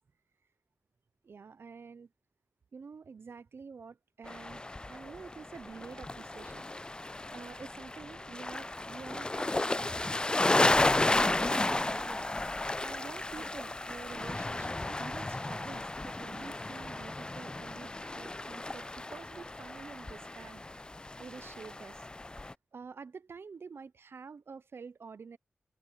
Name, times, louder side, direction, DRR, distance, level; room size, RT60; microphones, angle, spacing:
voice 1, 1.2-2.1 2.7-4.6 4.9-6.7 7.3-10.1 11.1-12.3 12.8-20.6 21.2-22.1 22.7-25.4, right 5 dB, 70° right, 0.7 m, -48 dB
sound 1, 4.3-22.5, left 2 dB, 20° left, 0.3 m, -33 dB
cardioid pair, 50°, 4 cm